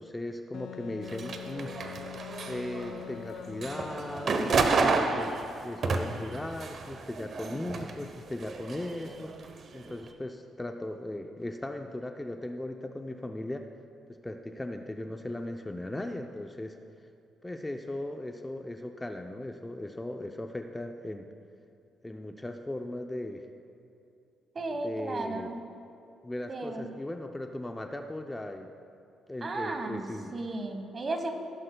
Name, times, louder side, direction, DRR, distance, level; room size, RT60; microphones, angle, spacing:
voice 1, 0.0-1.7 2.1-9.3 9.7-13.7 14.1-16.8 17.4-21.3 22.0-23.5 24.7-25.5 26.2-28.7 29.3-30.4, left 1 dB, 15° left, 5 dB, 0.5 m, -38 dB
Wind instrument woodwind instrument, 0.5-4.6, left 11 dB, 70° left, 0.3 m, -44 dB
sound 1, 1.0-3.2 3.5-8.0 8.3-10.0, right 4 dB, 55° right, 0.9 m, -31 dB
voice 2, 24.5-25.6 26.5-26.8 29.4-30.1 30.3-31.3, right 2 dB, 40° right, 5 dB, 1.3 m, -34 dB
16.0 x 11.0 x 2.3 m, 2.6 s
cardioid pair, 90°, 0 cm